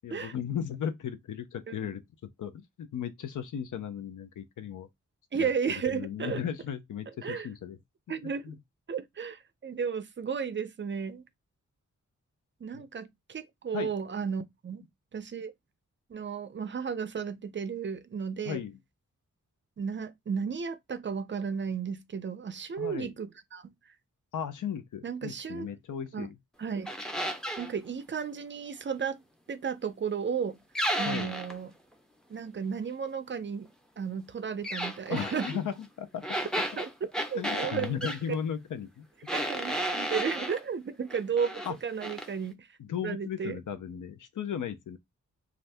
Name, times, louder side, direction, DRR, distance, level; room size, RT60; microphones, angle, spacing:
voice 1, 0.0-2.0 2.4-4.9 5.4-5.5 5.9-7.8 8.2-8.6 12.7-12.8 13.7-13.9 14.7-14.9 18.4-18.7 22.8-23.1 24.3-26.4 31.0-31.3 35.1-36.2 37.3-39.1 41.7-41.8 42.8-45.0, left 8 dB, 80° left, 0.6 m, -36 dB
voice 2, 5.3-6.4 7.2-7.5 8.1-8.5 8.9-11.2 12.6-14.8 15.1-15.5 16.1-18.6 19.8-23.7 25.0-25.7 26.1-26.3 26.6-26.9 27.6-29.2 29.5-30.6 31.0-31.7 32.3-33.7 34.0-35.5 36.8-36.9 37.3-38.0 38.3-38.4 39.3-42.7 43.0-43.6, right 6 dB, 40° right, 0.4 m, -33 dB
sound 1, 26.9-27.7 30.8-31.6 34.6-35.6 36.2-38.2 39.3-40.6 41.1-41.7 42.0-42.3, right 1 dB, ahead, 0.6 m, -33 dB
2.6 x 2.4 x 3.3 m
wide cardioid pair, 85°, 31 cm